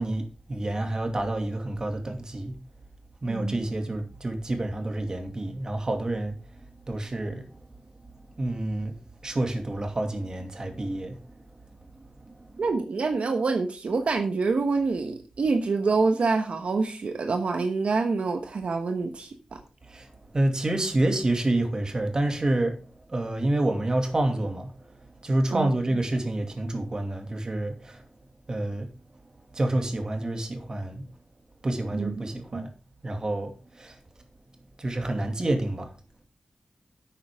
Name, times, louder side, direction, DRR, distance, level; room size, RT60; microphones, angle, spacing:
voice 1, 0.0-2.5 3.2-6.6 6.9-7.7 8.4-8.9 9.2-11.2 11.9-12.8 19.8-28.0 28.5-28.9 29.5-31.1 31.6-32.7 33.0-34.0 34.8-35.9, right 1 dB, 35° right, 2.4 m, -28 dB
voice 2, 3.3-3.7 12.6-19.6 25.5-25.7 31.9-32.2 32.5-32.6, right 4 dB, 75° right, 1.1 m, -26 dB
11.5 x 8.7 x 3.6 m
wide cardioid pair, 120°, 2 cm